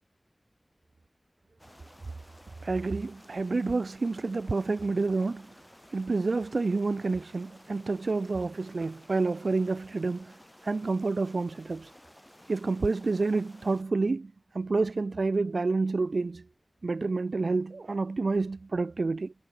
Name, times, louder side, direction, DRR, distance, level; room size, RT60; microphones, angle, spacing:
sound 1, 1.6-13.8, equal, 10° left, 3.1 m, -55 dB
voice 1, 2.6-5.5 5.9-10.4 10.6-11.9 12.5-16.4 16.8-19.3, right 3 dB, 90° right, 0.7 m, -29 dB
wide cardioid pair, 65°, 0 cm